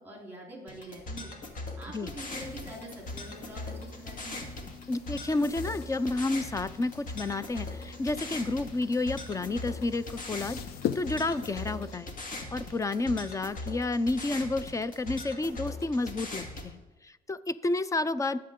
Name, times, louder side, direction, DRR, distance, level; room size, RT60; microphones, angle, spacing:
voice 1, 0.0-1.3 1.8-4.5, right 1 dB, 10° right, -1 dB, 3.7 m, -45 dB
sound 1, 0.7-16.7, left 2 dB, 50° left, 2.3 m, -40 dB
sound 2, 2.1-11.9, left 9 dB, 70° left, 0.6 m, -42 dB
voice 2, 4.9-10.6 11.0-12.1 12.5-18.4, left 2 dB, 20° left, 16 dB, 0.5 m, -30 dB
19.5 x 7.7 x 3.7 m, 1.1 s
cardioid pair, 110°, 17 cm